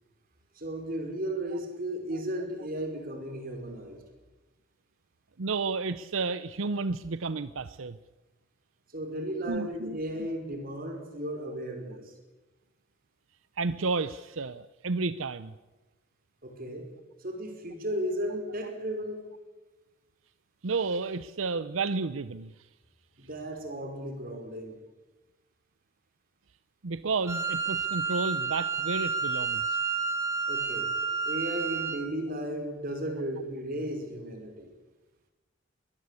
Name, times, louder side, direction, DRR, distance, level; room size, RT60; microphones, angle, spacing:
voice 1, 0.5-4.0 8.9-12.1 16.4-16.9 17.2-19.3 23.2-24.8 30.5-30.9 31.2-34.7, right 1 dB, 45° right, 4 dB, 5.2 m, -35 dB
voice 2, 5.4-8.0 9.5-10.0 13.6-15.5 20.6-22.5 26.8-29.8, right 4 dB, 85° right, 14 dB, 0.7 m, -31 dB
Wind instrument woodwind instrument, 27.3-32.1, right 5 dB, 15° right, 2.5 m, -30 dB
23.5 x 17.5 x 8.4 m, 1.2 s
head